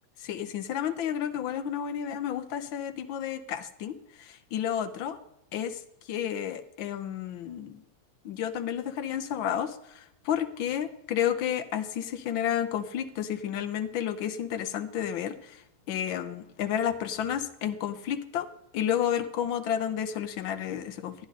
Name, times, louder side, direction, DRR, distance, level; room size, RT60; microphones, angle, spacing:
voice 1, 0.2-5.2 5.5-5.8 6.1-7.8 8.2-15.6 15.9-18.5 18.7-21.1, left 9 dB, 85° left, 9 dB, 1.6 m, -31 dB
13.5 x 10.5 x 4.1 m, 0.81 s
omnidirectional pair, 2.1 m